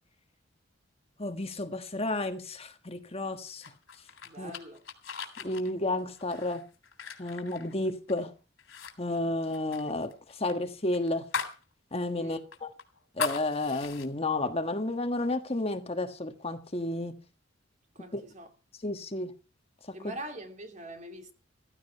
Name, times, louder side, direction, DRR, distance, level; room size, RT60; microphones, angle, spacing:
voice 1, 1.2-3.7 4.4-4.5 5.4-6.6 7.2-8.3 9.0-11.3 11.9-12.7 13.1-17.2 18.1-18.2 18.8-19.3 19.8-20.1, left 2 dB, 30° left, 1.4 m, -32 dB
sound 1, 3.6-8.2 8.6-8.9 9.2-11.6 12.0-12.1 12.5-14.1, left 5 dB, 85° left, 3.3 m, -39 dB
voice 2, 4.2-4.8 12.2-12.4 17.9-18.5 19.9-21.3, right 1 dB, 40° right, 2.7 m, -43 dB
15.5 x 14.0 x 4.6 m
head